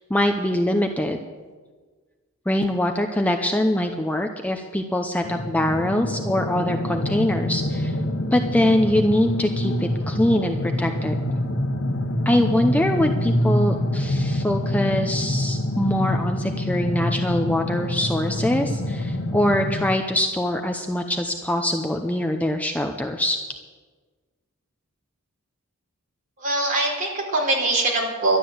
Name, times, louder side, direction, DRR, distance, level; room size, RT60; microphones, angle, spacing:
voice 1, 0.1-1.2 2.5-7.9 8.3-11.1 12.3-23.4, left 1 dB, 5° left, 4 dB, 0.7 m, -23 dB
sound 1, 5.2-19.9, left 1 dB, 65° left, 1.3 m, -26 dB
voice 2, 26.4-28.4, right 2 dB, 40° right, -2 dB, 4.1 m, -22 dB
12.0 x 11.5 x 7.9 m, 1.4 s
head